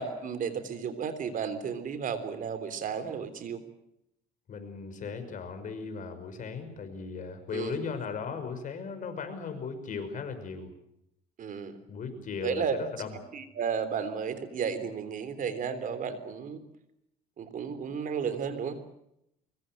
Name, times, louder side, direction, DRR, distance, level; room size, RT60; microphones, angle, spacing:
voice 1, 0.0-3.6 7.5-7.8 11.4-11.8 12.4-12.7 13.3-16.6 17.4-18.8, right 6 dB, 50° right, 11 dB, 3.5 m, -33 dB
voice 2, 4.5-10.7 11.9-13.1, left 5 dB, 50° left, 8 dB, 5.7 m, -37 dB
24.0 x 23.0 x 7.7 m, 0.78 s
cardioid pair, 110°, 17 cm